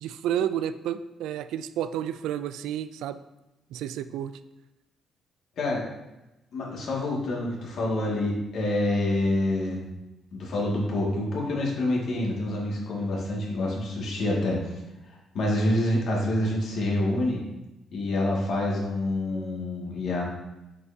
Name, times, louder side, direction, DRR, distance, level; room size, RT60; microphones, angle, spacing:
voice 1, 0.0-3.2 3.7-4.3, right 10 dB, 90° right, 12 dB, 0.3 m, -30 dB
voice 2, 6.5-9.8 10.3-14.6 15.3-17.4 17.9-20.2, left 1 dB, 65° left, -3 dB, 2.0 m, -27 dB
7.8 x 5.5 x 2.7 m, 0.98 s
cardioid pair, 90°, 0 cm